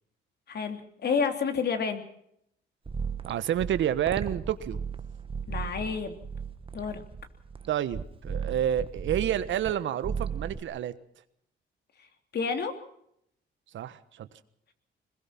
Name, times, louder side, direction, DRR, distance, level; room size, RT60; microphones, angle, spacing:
voice 1, 0.5-2.0 5.5-6.2 6.7-7.0 12.3-12.8, left 5 dB, 55° left, 7 dB, 3.1 m, -29 dB
sound 1, 2.8-9.7 10.0-10.6, right 6 dB, 25° right, 1.4 m, -36 dB
voice 2, 3.3-4.8 7.7-10.9 13.7-14.3, right 10 dB, 70° right, 13 dB, 1.3 m, -29 dB
22.0 x 20.5 x 6.0 m, 0.73 s
cardioid pair, 90°, 20 cm